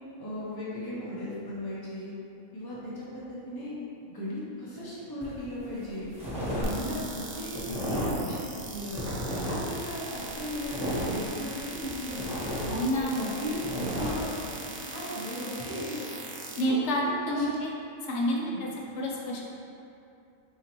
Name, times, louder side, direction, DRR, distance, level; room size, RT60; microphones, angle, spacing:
voice 1, 0.2-2.1 2.5-3.7 4.1-6.1 6.5-9.1 9.4-12.4 12.9-14.3 14.6-16.1 16.6-16.8 17.0-17.6 18.3-18.6, left 1 dB, 25° left, -8 dB, 0.5 m, -36 dB
sound 1, 5.2-5.4 5.8-6.7 6.9-8.2 8.6-9.8 10.1-11.8 12.1-14.1, equal, 5° right, 0.9 m, -33 dB
sound 2, 6.6-16.6, right 3 dB, 75° right, 0.5 m, -40 dB
voice 2, 12.7-13.3 16.6-17.7 18.0-18.7 19.0-19.4, equal, 65° left, -3 dB, 0.8 m, -28 dB
4.2 x 2.9 x 2.9 m, 2.6 s
omnidirectional pair, 1.5 m